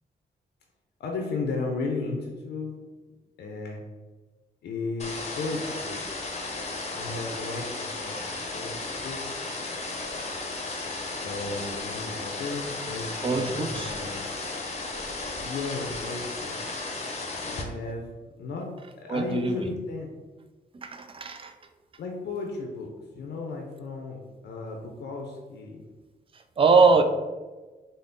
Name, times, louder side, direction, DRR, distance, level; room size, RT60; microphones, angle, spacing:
voice 1, 1.0-2.8 3.4-3.8 4.6-6.0 6.9-8.2 8.5-9.2 11.2-14.2 15.3-16.6 17.4-18.1 18.4-18.7 19.0-20.1 22.0-25.8 26.9-27.0, left 3 dB, 80° left, 1 dB, 0.5 m, -34 dB
sound 1, 5.0-17.6, left 3 dB, 40° left, 0.6 m, -34 dB
voice 2, 13.2-13.9 19.1-19.6 20.8-21.5 26.3-27.0, right 4 dB, 30° right, 7 dB, 0.4 m, -22 dB
3.4 x 2.0 x 3.8 m, 1.3 s
cardioid pair, 65°, 17 cm